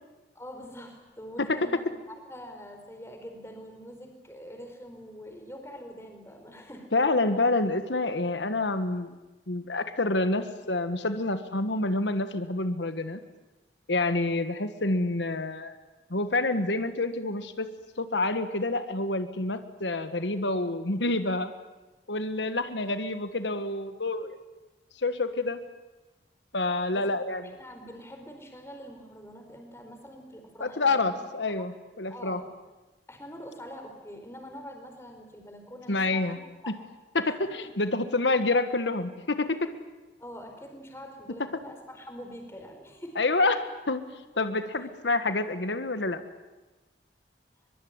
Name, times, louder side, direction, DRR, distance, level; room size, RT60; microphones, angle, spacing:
voice 1, 0.3-1.9 2.3-6.9 22.9-23.0 26.9-27.1 27.4-31.1 31.5-31.7 32.1-32.5 33.1-36.8 37.2-37.3 40.2-43.2, equal, 15° left, 4 dB, 4.6 m, -44 dB
voice 2, 6.9-9.1 9.5-13.2 13.9-15.7 16.1-21.5 22.1-24.3 25.0-25.6 26.5-27.4 30.6-32.4 35.9-36.4 37.1-39.7 43.2-44.0 44.4-46.2, left 2 dB, 90° left, 10 dB, 1.5 m, -28 dB
23.5 x 23.0 x 9.6 m, 1.1 s
head